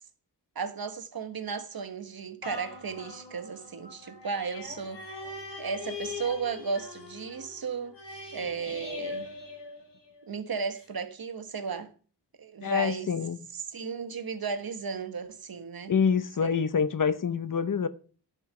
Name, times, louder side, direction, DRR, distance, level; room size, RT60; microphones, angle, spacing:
voice 1, 0.5-5.0 5.6-8.0 8.3-9.3 10.3-11.9 12.4-13.1 13.5-15.9 16.4-16.5, right 5 dB, 55° right, 1.4 m, -35 dB
sound 1, 2.4-10.3 10.8-10.9, left 4 dB, 80° left, 3.1 m, -42 dB
voice 2, 12.6-13.4 15.9-17.9, left 6 dB, 50° left, 0.9 m, -26 dB
10.5 x 5.4 x 7.6 m
wide cardioid pair, 90°, 42 cm